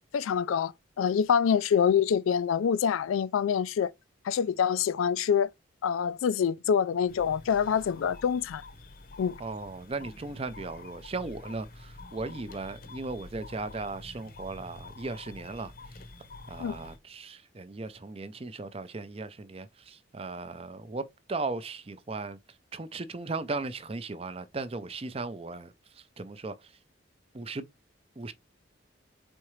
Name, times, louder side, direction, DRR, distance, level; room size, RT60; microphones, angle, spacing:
voice 1, 0.1-0.7 1.0-3.9 4.3-5.5 5.8-8.6 9.2-9.4 16.6-16.8, left 7 dB, 85° left, 0.3 m, -26 dB
sound 1, 7.1-17.0, left 2 dB, 45° left, 0.7 m, -47 dB
voice 2, 9.4-16.0 16.5-26.8 27.3-27.6 28.2-28.3, right 3 dB, 30° right, 0.5 m, -37 dB
4.4 x 3.7 x 3.1 m
head